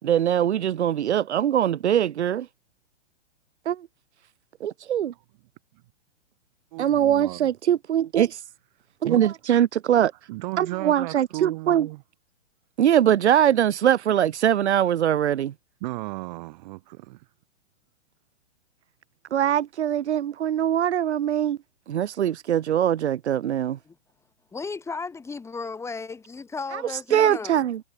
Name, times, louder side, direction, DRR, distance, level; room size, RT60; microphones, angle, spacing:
voice 1, 0.0-2.5 3.7-3.9 4.6-5.1 6.8-8.4 9.0-10.1 10.6-11.9 12.8-15.5 19.3-21.6 21.9-23.8 26.7-26.8 27.1-27.8, right 10 dB, 70° right, 2.2 m, -22 dB
voice 2, 6.7-7.5 9.0-9.2 10.3-12.0 15.8-17.2, right 21 dB, 40° right, 2.5 m, -35 dB
voice 3, 24.5-27.6, left 4 dB, 10° left, 5.3 m, -35 dB
hypercardioid pair, 155°, 35 cm